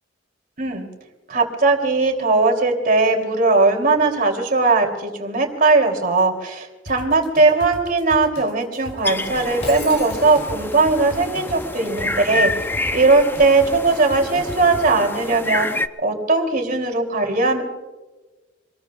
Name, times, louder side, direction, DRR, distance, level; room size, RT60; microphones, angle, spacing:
voice 1, 1.3-12.5 12.9-15.7 16.0-17.6, right 3 dB, 50° right, 3 dB, 3.0 m, -18 dB
sound 1, 6.9-14.8, equal, 60° left, 3.0 m, -36 dB
Blackbird and other birds Sweden short, 9.0-15.9, left 2 dB, 10° left, 0.6 m, -28 dB
Shatter, 9.6-10.8, left 2 dB, 35° left, 5.1 m, -36 dB
26.5 x 20.5 x 2.4 m, 1.2 s
head